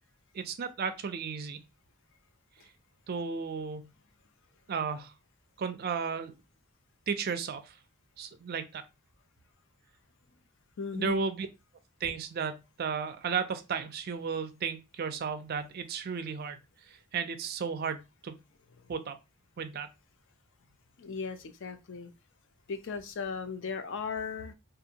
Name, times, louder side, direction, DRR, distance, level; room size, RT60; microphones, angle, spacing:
voice 1, 0.3-1.6 3.1-3.9 4.7-5.1 5.6-6.3 7.1-7.8 8.2-8.8 10.9-11.5 12.0-16.6 16.9-18.4 18.9-19.2 19.6-19.9, right 5 dB, 45° right, 0.3 m, -34 dB
voice 2, 10.8-11.2 21.0-22.1 22.7-24.5, left 5 dB, 55° left, 0.4 m, -37 dB
2.6 x 2.5 x 2.7 m
head